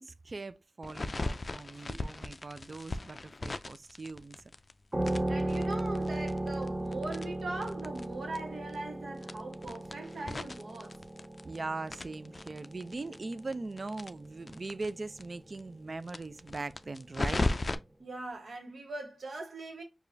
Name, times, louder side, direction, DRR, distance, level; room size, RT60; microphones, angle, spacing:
voice 1, 0.0-4.4 11.4-17.5, right 3 dB, 50° right, 0.3 m, -40 dB
sound 1, 0.8-4.7 5.0-8.1 8.3-8.4 8.7-8.8 9.2-11.6 11.9-14.9 15.2-15.3 15.5-15.6 16.0-17.8, left 2 dB, 50° left, 0.3 m, -37 dB
voice 2, 1.8-2.3 5.3-11.0 18.0-19.8, right 2 dB, 80° right, 1.2 m, -41 dB
sound 2, 4.9-14.1, right 1 dB, 35° right, 1.5 m, -36 dB
4.9 x 2.4 x 2.6 m
cardioid pair, 50°, 0 cm